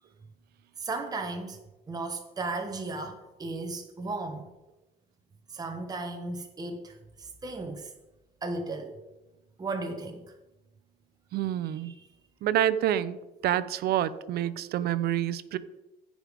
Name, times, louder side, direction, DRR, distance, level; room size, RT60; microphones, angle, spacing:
voice 1, 0.8-1.6 1.9-4.5 5.5-7.9 8.4-8.9 9.6-10.3 11.6-12.1, right 3 dB, 20° right, 4 dB, 1.2 m, -35 dB
voice 2, 11.3-11.9 12.4-13.2 13.4-15.6, right 11 dB, 70° right, 16 dB, 0.7 m, -27 dB
15.0 x 5.0 x 5.2 m, 1.0 s
cardioid pair, 110°, 17 cm